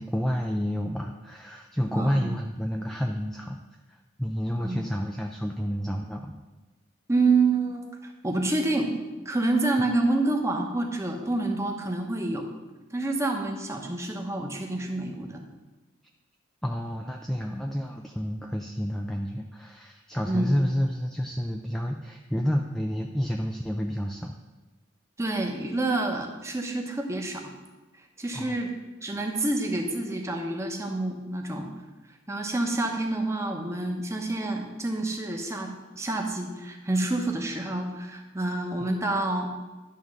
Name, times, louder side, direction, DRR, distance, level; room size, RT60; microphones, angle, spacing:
voice 1, 0.0-3.6 3.9-6.4 16.6-24.3 28.3-28.6 38.8-38.9, equal, ahead, 1 dB, 0.3 m, -30 dB
voice 2, 1.9-2.3 4.6-4.8 7.1-7.8 8.2-8.9 9.2-12.4 12.9-15.4 20.3-20.5 25.2-27.5 28.2-28.7 29.0-31.7 32.3-39.5, right 2 dB, 15° right, 2 dB, 0.9 m, -28 dB
10.5 x 3.6 x 6.3 m, 1.2 s
head